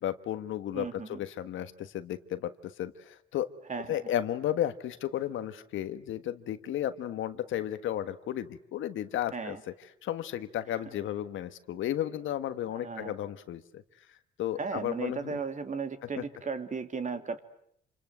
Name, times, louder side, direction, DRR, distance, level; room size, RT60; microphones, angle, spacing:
voice 1, 0.0-3.5 3.9-9.6 10.0-13.8 14.4-15.4 16.2-16.3, left 11 dB, 80° left, 11 dB, 1.5 m, -33 dB
voice 2, 0.7-1.2 3.7-4.1 9.3-9.6 12.7-13.1 14.6-17.4, right 5 dB, 40° right, 8 dB, 2.5 m, -36 dB
28.0 x 26.5 x 8.0 m, 0.72 s
cardioid pair, 90°, 20 cm